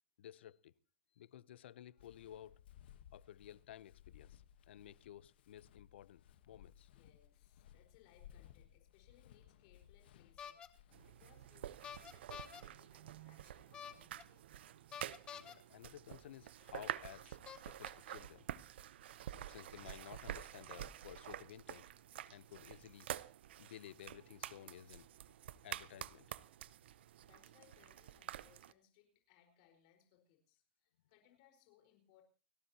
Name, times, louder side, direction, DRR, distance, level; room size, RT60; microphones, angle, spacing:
voice 1, 0.2-0.7 1.2-2.6 3.1-6.9 15.3-17.4 17.6-18.5 19.5-21.8 22.2-23.1 23.6-25.1 25.6-26.3, left 11 dB, 85° left, 0.7 m, -55 dB
Walk footsteps, 2.0-11.6, left 10 dB, 65° left, 1.1 m, -62 dB
voice 2, 6.6-14.7 26.8-32.2, left 10 dB, 40° left, 4.5 m, -70 dB
sound 1, 10.4-10.7 11.8-12.6 13.7-14.2 14.9-15.5 16.6-16.7 17.5-17.9, left 8 dB, 15° left, 0.9 m, -49 dB
sound 2, 10.9-28.7, right 12 dB, 80° right, 0.7 m, -49 dB
30.0 x 12.5 x 2.8 m
supercardioid pair, 175°, 6 cm